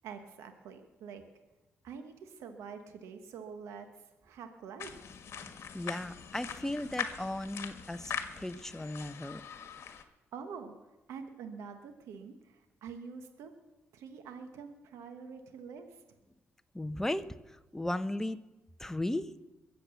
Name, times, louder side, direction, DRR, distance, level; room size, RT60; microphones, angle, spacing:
voice 1, 0.0-1.2 1.8-3.9 4.2-5.2 10.0-10.7 11.1-13.5 13.9-16.0, right 6 dB, 90° right, 7 dB, 1.2 m, -46 dB
sound 1, 4.8-10.0, left 7 dB, 65° left, 1.4 m, -42 dB
voice 2, 5.7-9.4 16.7-18.4 18.8-19.3, left 1 dB, 10° left, 11 dB, 0.8 m, -36 dB
22.0 x 7.7 x 7.0 m, 1.1 s
cardioid pair, 70°, 5 cm